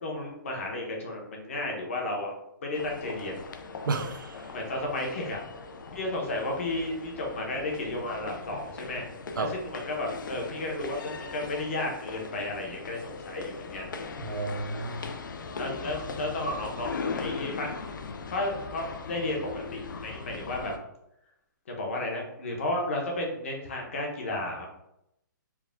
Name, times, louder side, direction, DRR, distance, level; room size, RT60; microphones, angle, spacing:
voice 1, 0.0-2.4 2.6-3.4 4.5-5.4 5.9-9.0 9.4-13.9 15.6-17.8 18.3-20.7 21.7-24.7, left 2 dB, 40° left, 0 dB, 1.0 m, -33 dB
sound 1, 2.7-20.8, left 4 dB, 70° left, 0.5 m, -39 dB
voice 2, 3.9-4.5 9.4-9.5 14.2-15.0, right 4 dB, 80° right, 7 dB, 0.6 m, -32 dB
4.6 x 2.3 x 3.5 m, 0.80 s
hypercardioid pair, 180°, 11 cm